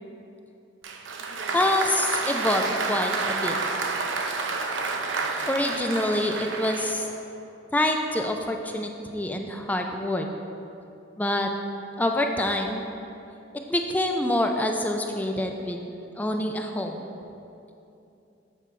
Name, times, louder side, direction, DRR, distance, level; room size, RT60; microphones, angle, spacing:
Applause, 0.8-7.2, right 4 dB, 85° right, 0.6 m, -29 dB
voice 1, 1.5-3.5 5.4-7.1 7.7-10.3 11.2-11.5 12.0-12.8 13.5-15.9 16.2-17.1, left 1 dB, 10° left, 4 dB, 0.3 m, -26 dB
8.1 x 4.5 x 5.6 m, 2.8 s
head